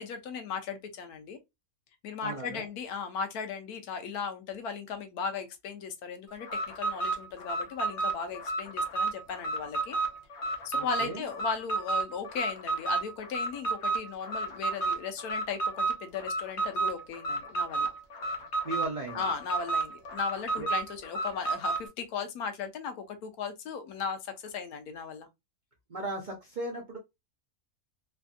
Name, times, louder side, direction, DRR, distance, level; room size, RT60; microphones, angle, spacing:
voice 1, 0.0-1.4 2.0-6.5 6.8-10.0 10.6-17.9 19.1-25.3, left 6 dB, 80° left, 1.2 m, -37 dB
voice 2, 2.2-2.7 10.7-11.2 18.6-19.2 20.6-20.7 25.9-27.0, right 2 dB, 45° right, 0.6 m, -36 dB
Alarm, 6.4-21.9, right 3 dB, 55° left, 1.0 m, -31 dB
3.3 x 2.6 x 2.2 m
omnidirectional pair, 1.6 m